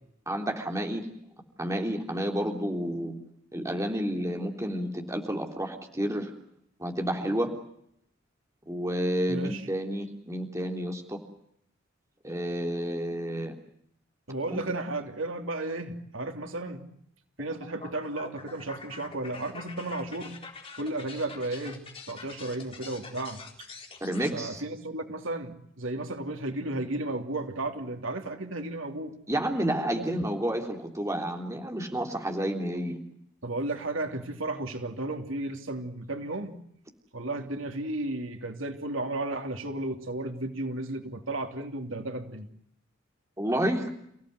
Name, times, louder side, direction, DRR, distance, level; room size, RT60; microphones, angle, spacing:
voice 1, 0.3-1.1 1.6-3.1 3.5-6.3 6.8-7.5 8.7-11.2 12.2-13.6 14.5-14.6 24.0-24.6 29.3-33.0 43.4-43.9, equal, 15° right, 3 dB, 3.5 m, -30 dB
voice 2, 9.3-9.6 14.3-16.8 17.4-20.3 20.8-21.8 22.1-23.4 24.3-29.1 29.9-30.1 33.4-36.6 37.1-42.5, right 2 dB, 80° right, 5 dB, 3.2 m, -34 dB
sound 1, 17.4-24.3, left 4 dB, 30° left, 3.9 m, -46 dB
30.0 x 17.0 x 9.5 m, 0.73 s
head